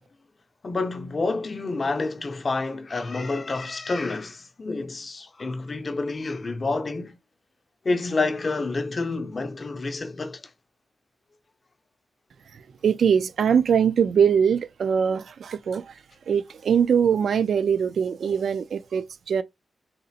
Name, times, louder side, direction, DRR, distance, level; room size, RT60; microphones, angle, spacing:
voice 1, 0.6-7.2 7.8-10.4, left 3 dB, 35° left, 0.5 m, -28 dB
voice 2, 12.5-16.0 16.3-19.4, right 7 dB, 70° right, 0.3 m, -22 dB
3.9 x 2.4 x 2.6 m
wide cardioid pair, 120°, 0 cm